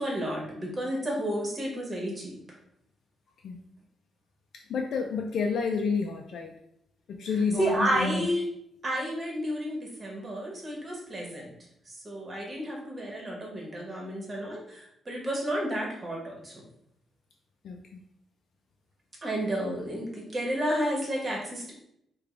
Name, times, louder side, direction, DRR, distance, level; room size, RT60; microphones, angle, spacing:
voice 1, 0.0-2.4 7.6-8.4 8.8-11.5 11.9-16.6 19.2-21.7, equal, 30° right, -2 dB, 1.2 m, -31 dB
voice 2, 4.7-6.5 7.1-8.3 17.6-18.0, left 5 dB, 70° left, 2 dB, 0.3 m, -29 dB
4.7 x 2.2 x 2.4 m, 0.75 s
cardioid pair, 95°, 0 cm